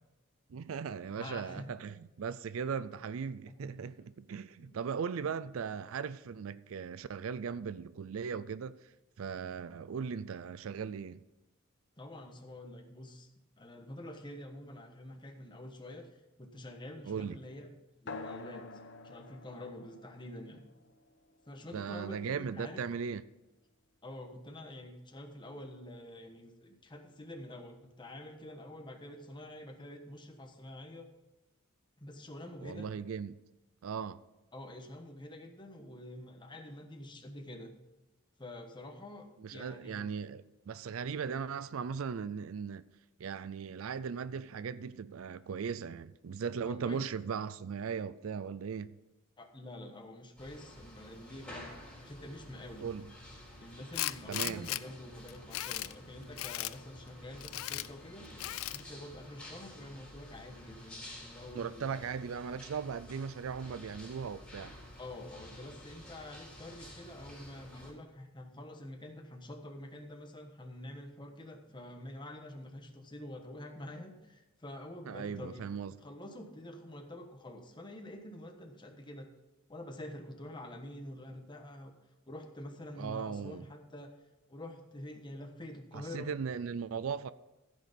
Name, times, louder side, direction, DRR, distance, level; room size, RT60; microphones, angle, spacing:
voice 1, 0.5-8.8 9.2-11.2 17.1-17.4 21.7-23.2 32.6-33.3 33.8-34.2 39.4-42.8 43.2-49.0 52.8-53.1 54.3-54.7 61.5-64.8 75.1-75.9 83.0-83.6 85.9-87.3, right 6 dB, 80° right, 0.4 m, -38 dB
voice 2, 1.2-1.7 3.5-3.9 4.6-4.7 5.2-5.4 7.6-7.7 12.0-13.3 13.6-16.1 16.4-17.7 18.0-18.6 19.0-20.7 21.5-22.8 24.0-31.1 32.0-32.9 34.5-37.8 38.4-40.1 46.6-47.0 49.4-51.7 52.0-52.8 53.6-58.3 58.7-61.9 65.0-75.6 75.9-79.3 79.7-81.9 82.3-84.1 84.5-86.3, left 1 dB, 25° left, 1.2 m, -47 dB
sound 1, 18.1-23.1, left 3 dB, 60° left, 0.9 m, -49 dB
sound 2, 50.4-67.9, left 1 dB, 5° left, 3.8 m, -51 dB
Tools, 53.9-54.8 55.3-55.9 56.4-56.7 57.4-57.9 58.4-58.8, left 15 dB, 80° left, 0.4 m, -36 dB
15.0 x 6.6 x 5.3 m
head